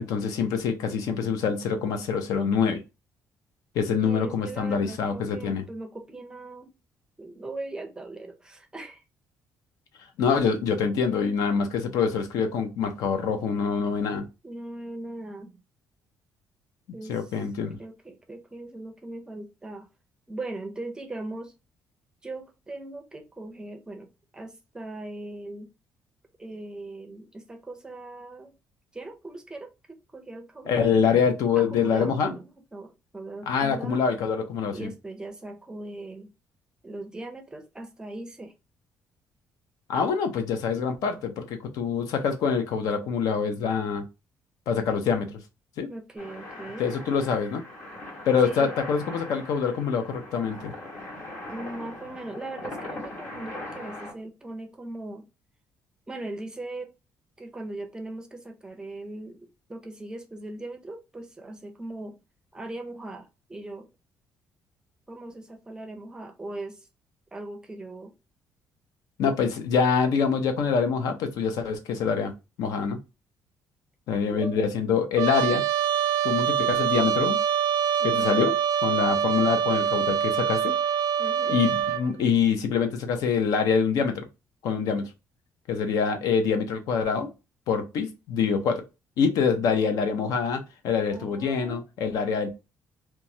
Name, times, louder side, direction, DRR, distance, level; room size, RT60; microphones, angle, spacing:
voice 1, 0.0-2.8 3.7-5.6 10.2-14.3 17.1-17.8 30.7-32.3 33.5-34.9 39.9-44.0 44.7-45.3 45.8-45.9 46.8-47.6 48.3-50.7 69.2-72.3 72.6-73.0 74.1-75.6 76.2-77.4 78.0-78.5 78.8-80.7 81.5-84.2 84.6-85.1 85.7-87.3 87.7-88.8 89.2-92.5, left 6 dB, 80° left, 0.6 m, -25 dB
voice 2, 4.0-6.7 7.2-9.0 14.4-15.6 16.9-17.3 17.8-19.9 20.3-21.5 22.2-24.1 24.3-25.7 26.4-28.5 28.9-31.1 31.6-34.0 34.7-36.3 36.8-38.5 45.9-46.9 48.4-48.7 51.4-55.3 56.1-56.9 57.4-62.2 62.5-63.9 65.1-66.9 67.3-68.1 74.2-74.6 78.0-78.4 81.2-81.6 91.1-91.8, right 2 dB, 10° right, 0.5 m, -39 dB
sound 1, 46.2-54.1, left 2 dB, 40° left, 1.6 m, -40 dB
Trumpet, 75.2-82.0, right 9 dB, 90° right, 0.4 m, -25 dB
3.0 x 2.3 x 2.6 m
cardioid pair, 160°, 6 cm